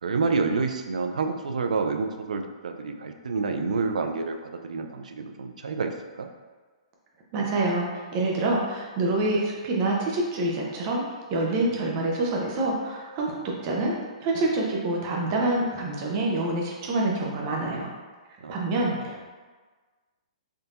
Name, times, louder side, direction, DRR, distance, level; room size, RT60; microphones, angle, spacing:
voice 1, 0.0-6.3 18.4-18.5 18.9-19.2, right 4 dB, 85° right, 5 dB, 0.4 m, -28 dB
voice 2, 7.3-11.0 11.3-13.9 14.2-17.9 18.5-19.2, right 2 dB, 40° right, -2 dB, 0.8 m, -26 dB
3.6 x 2.6 x 2.5 m, 1.4 s
hypercardioid pair, 135°, 4 cm